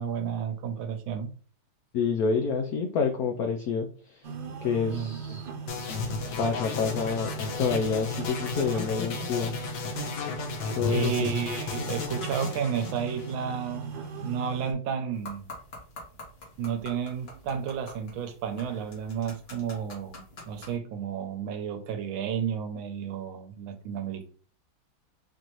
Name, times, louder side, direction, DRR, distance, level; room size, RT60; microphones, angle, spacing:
voice 1, 0.0-1.3 4.9-5.4 10.8-13.9 14.2-15.5 16.6-24.3, right 7 dB, 85° right, 7 dB, 1.4 m, -32 dB
voice 2, 1.9-4.2 4.6-5.5 6.4-7.3 7.6-9.5 10.8-11.3, left 5 dB, 85° left, 4 dB, 0.8 m, -28 dB
sound 1, 4.2-14.7, right 5 dB, 70° right, 1.4 m, -39 dB
sound 2, 5.7-13.8, left 5 dB, 70° left, 1.4 m, -34 dB
sound 3, 15.1-20.8, left 2 dB, 50° left, 1.6 m, -47 dB
4.6 x 2.6 x 3.0 m, 0.40 s
omnidirectional pair, 2.2 m